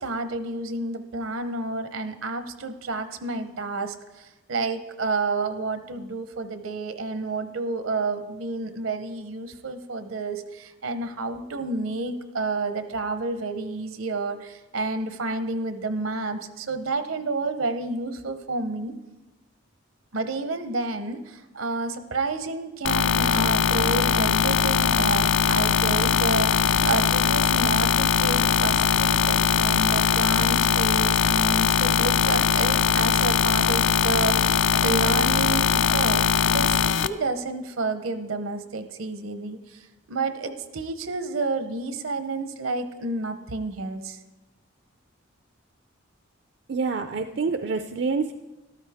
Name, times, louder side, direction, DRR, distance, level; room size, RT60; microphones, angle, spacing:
voice 1, 0.0-18.9 20.1-44.2, right 3 dB, 80° right, 9 dB, 0.8 m, -30 dB
sound 1, 22.8-37.1, left 7 dB, 65° left, 0.4 m, -21 dB
voice 2, 46.7-48.3, right 4 dB, 55° right, 8 dB, 0.4 m, -27 dB
13.5 x 12.5 x 3.5 m, 1.1 s
head